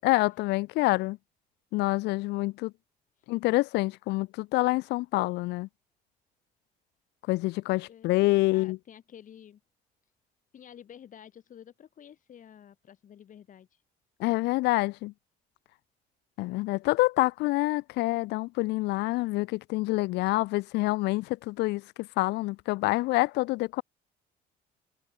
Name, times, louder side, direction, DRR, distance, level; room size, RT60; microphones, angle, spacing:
voice 1, 0.0-1.2 1.7-2.7 3.3-5.7 7.3-8.8 14.2-15.1 16.4-23.8, left 20 dB, 90° left, 2.1 m, -27 dB
voice 2, 7.9-9.6 10.5-13.8, left 9 dB, 50° left, 6.7 m, -51 dB
cardioid pair, 110°, 17 cm